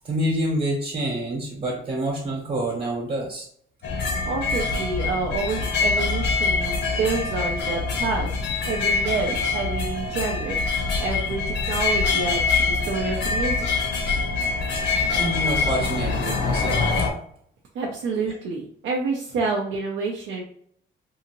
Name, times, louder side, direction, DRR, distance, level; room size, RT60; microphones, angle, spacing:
voice 1, 0.0-3.5 15.1-16.8, right 1 dB, 40° right, -2 dB, 1.0 m, -27 dB
sound 1, 3.8-17.1, left 4 dB, 65° left, 0.7 m, -24 dB
voice 2, 4.2-8.4 8.7-13.7 17.7-20.4, right 4 dB, 80° right, -1 dB, 0.6 m, -28 dB
2.7 x 2.6 x 2.9 m, 0.63 s
cardioid pair, 90°, 20 cm